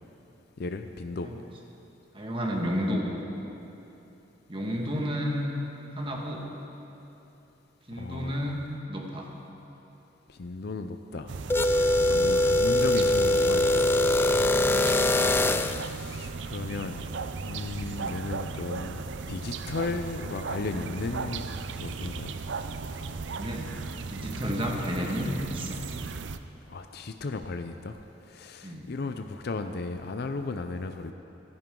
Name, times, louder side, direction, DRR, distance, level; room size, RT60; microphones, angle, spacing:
voice 1, 0.6-1.3 7.9-8.5 10.3-11.4 11.8-13.9 15.5-17.0 17.4-21.5 21.8-22.3 26.7-28.0 28.2-31.1, left 3 dB, 60° left, 7 dB, 0.5 m, -35 dB
voice 2, 2.1-3.1 4.5-5.5 5.9-6.5 7.9-9.3 12.0-12.2 23.3-23.7 24.1-25.8 28.6-28.9, equal, 30° right, -1 dB, 1.8 m, -32 dB
sound 1, 11.3-26.4, right 4 dB, 75° right, 0.6 m, -36 dB
sound 2, 11.5-15.9, left 1 dB, 10° left, 0.3 m, -23 dB
24.5 x 10.5 x 3.8 m, 3.0 s
head